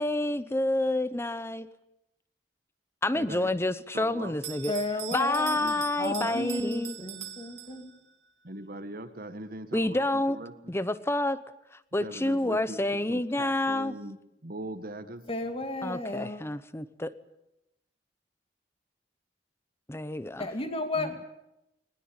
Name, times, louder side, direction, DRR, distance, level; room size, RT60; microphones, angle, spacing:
voice 1, 0.0-1.7 3.0-4.7 5.1-7.0 9.7-10.4 10.7-11.4 11.7-13.9 15.8-17.1 19.9-20.5 21.0-21.1, left 1 dB, 15° left, 15 dB, 0.8 m, -28 dB
voice 2, 3.1-3.5 3.9-4.4 5.6-6.5 8.4-10.8 12.0-12.8 13.1-14.2 14.4-15.2, right 1 dB, 55° right, 9 dB, 1.8 m, -40 dB
Bell, 4.4-8.2, right 12 dB, 80° right, 2.0 m, -42 dB
voice 3, 4.7-5.6 6.0-7.9 15.3-16.4 20.4-21.2, left 2 dB, 35° left, 6 dB, 2.7 m, -33 dB
20.0 x 20.0 x 8.8 m, 0.89 s
head